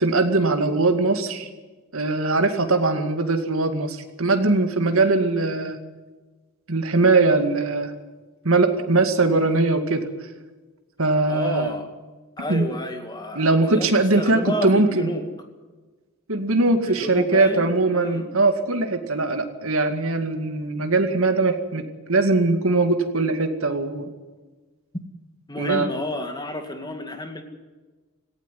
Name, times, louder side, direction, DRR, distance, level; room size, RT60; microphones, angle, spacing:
voice 1, 0.0-1.5 1.9-5.8 6.7-7.9 8.4-10.1 11.0-11.8 12.5-12.7 13.4-15.1 16.3-24.1 25.6-25.9, right 3 dB, 70° right, 7 dB, 2.2 m, -21 dB
voice 2, 11.3-11.9 12.4-15.2 16.9-18.2 25.5-27.4, left 1 dB, 20° left, 6 dB, 2.2 m, -31 dB
17.5 x 16.5 x 9.4 m, 1.3 s
head